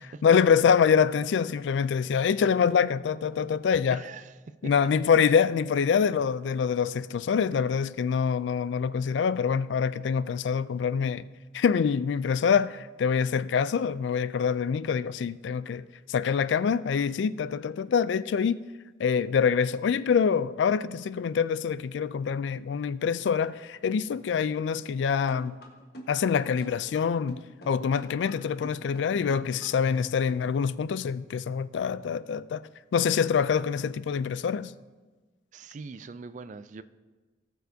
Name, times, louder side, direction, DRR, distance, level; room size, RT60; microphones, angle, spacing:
voice 1, 0.2-4.0 4.6-11.2 11.5-15.8 16.1-18.6 19.0-25.5 26.1-32.6 32.9-34.7, left 6 dB, 80° left, 0.3 m, -25 dB
voice 2, 3.9-4.7 35.5-36.8, right 4 dB, 45° right, 0.3 m, -42 dB
sound 1, 25.3-30.6, right 1 dB, 60° left, 1.4 m, -44 dB
18.5 x 6.4 x 2.7 m
head